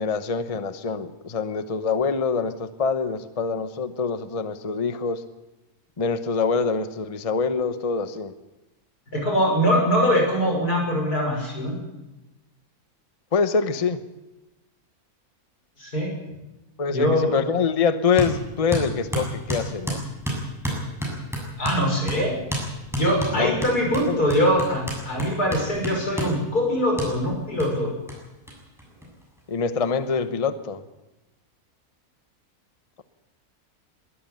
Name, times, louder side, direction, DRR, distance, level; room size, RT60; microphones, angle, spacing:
voice 1, 0.0-5.2 6.0-8.3 13.3-14.0 16.8-20.0 23.3-23.6 24.1-24.2 29.5-30.8, left 5 dB, 25° left, 11 dB, 0.9 m, -25 dB
voice 2, 9.1-11.8 15.8-16.1 16.9-17.4 21.6-22.4 22.9-27.9, equal, 90° left, 1 dB, 6.7 m, -22 dB
sound 1, 18.2-18.3 18.7-21.8 22.1-22.2 22.5-22.7 22.9-26.4 27.0-27.1 27.6-27.7 28.1-28.2 28.5-28.6 28.8-29.5, right 1 dB, ahead, 7.2 m, -29 dB
21.5 x 14.0 x 9.1 m, 1.0 s
omnidirectional pair, 1.6 m